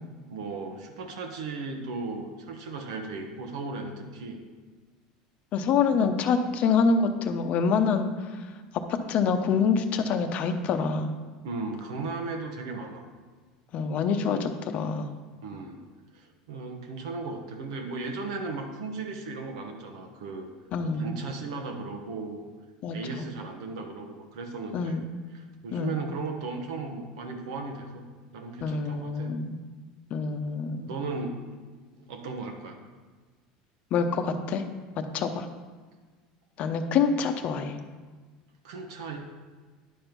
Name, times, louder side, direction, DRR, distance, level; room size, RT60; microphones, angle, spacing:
voice 1, 0.3-4.4 11.4-13.1 15.4-15.8 16.1-20.5 20.8-22.4 22.9-25.0 25.3-28.1 28.3-29.4 30.8-31.4 31.9-32.8 38.6-39.2, right 3 dB, 90° right, 4 dB, 1.2 m, -36 dB
voice 2, 5.5-8.1 9.1-11.1 13.7-15.1 20.7-21.1 22.8-23.3 24.7-25.0 25.7-26.0 28.6-29.6 30.1-30.9 33.9-34.6 35.0-35.5 36.6-37.8, left 5 dB, 45° left, 7 dB, 0.7 m, -26 dB
10.0 x 4.5 x 5.2 m, 1.4 s
supercardioid pair, 125°, 3 cm